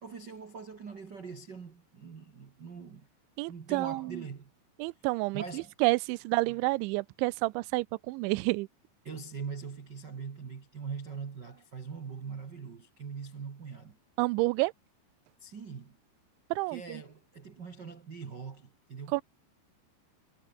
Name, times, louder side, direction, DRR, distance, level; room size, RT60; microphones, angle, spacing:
voice 1, 0.0-3.1 3.5-4.5 5.3-5.7 6.5-6.6 9.0-14.0 15.4-16.0 16.7-19.2, right 5 dB, 70° right, 1.0 m, -42 dB
voice 2, 3.4-4.2 4.8-8.7 14.2-14.7 16.5-17.0 19.1-19.2, right 23 dB, 90° right, 3.0 m, -29 dB
omnidirectional pair, 5.3 m